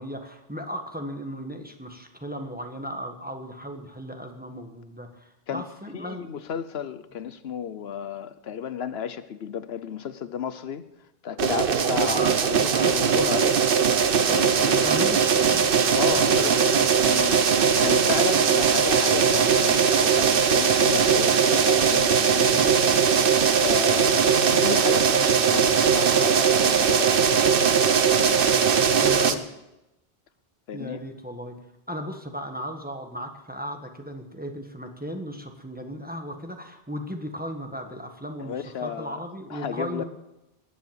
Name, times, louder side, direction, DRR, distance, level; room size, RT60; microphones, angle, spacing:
voice 1, 0.0-6.3 11.9-13.4 14.0-16.9 17.2-17.3 22.4-23.4 28.5-29.4 30.7-31.6 31.9-38.5 38.8-40.0, equal, 10° right, 4 dB, 1.5 m, -36 dB
voice 2, 5.9-10.8 11.2-13.6 14.2-15.2 15.9-16.8 17.0-22.5 23.6-28.8 29.3-29.5 30.7-31.0 38.4-39.2 39.5-40.0, left 8 dB, 80° left, 13 dB, 1.0 m, -33 dB
sound 1, 11.4-29.3, right 6 dB, 60° right, 1.0 m, -20 dB
19.5 x 7.5 x 8.1 m, 0.91 s
omnidirectional pair, 1.0 m